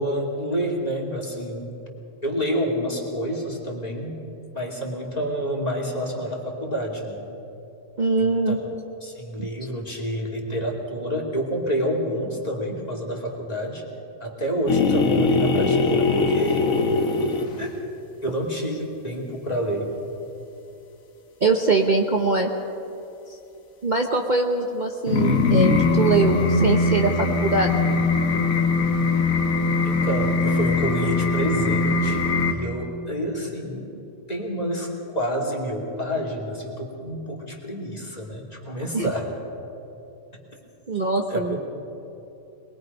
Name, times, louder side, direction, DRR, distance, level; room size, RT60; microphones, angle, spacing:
voice 1, 0.0-1.7 2.2-4.2 4.5-7.2 8.2-8.6 9.0-13.8 14.2-17.1 17.6-17.7 18.2-19.9 29.8-32.2 32.5-33.9 34.3-39.3 41.3-41.6, equal, 30° left, -1 dB, 2.7 m, -28 dB
voice 2, 8.0-8.6 21.4-22.5 23.8-27.1 27.4-27.8 38.9-39.1 40.9-41.6, right 3 dB, 35° right, 2 dB, 1.0 m, -22 dB
sound 1, 14.7-17.8 25.1-32.5, left 3 dB, 90° left, 1.7 m, -21 dB
22.5 x 21.0 x 5.4 m, 2.9 s
omnidirectional pair, 1.4 m